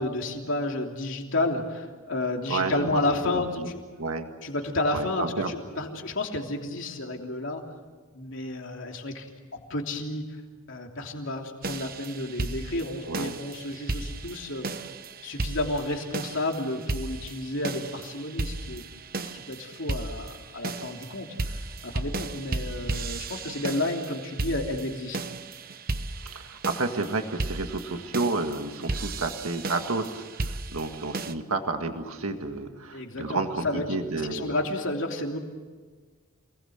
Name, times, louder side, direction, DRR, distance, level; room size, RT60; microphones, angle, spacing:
voice 1, 0.0-3.5 3.7-3.8 4.4-7.7 8.1-10.4 10.7-14.8 15.2-18.9 19.3-25.2 32.9-35.4, left 2 dB, 60° left, 2 dB, 3.2 m, -31 dB
voice 2, 2.5-3.0 3.3-3.7 4.0-4.3 4.9-5.5 13.1-13.3 26.2-34.5, right 3 dB, 75° right, 6 dB, 1.9 m, -31 dB
sound 1, 11.6-31.3, right 2 dB, 45° right, 1.0 m, -35 dB
28.0 x 20.0 x 8.0 m, 1.4 s
head